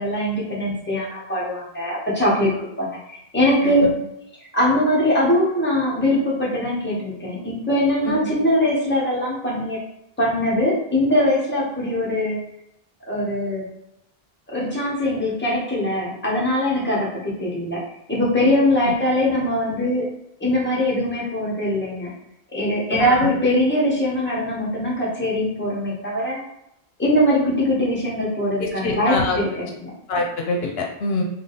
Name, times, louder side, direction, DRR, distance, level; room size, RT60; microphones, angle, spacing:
voice 1, 0.0-2.5 2.8-3.9 4.5-9.8 10.2-12.4 13.1-13.7 14.5-17.8 18.1-20.1 20.4-22.1 22.5-26.4 27.0-29.9, left 1 dB, 10° left, -6 dB, 1.1 m, -21 dB
voice 2, 22.9-23.3 28.6-29.4 30.1-31.2, left 2 dB, 75° left, 1 dB, 0.9 m, -25 dB
3.6 x 2.3 x 4.0 m, 0.83 s
omnidirectional pair, 1.1 m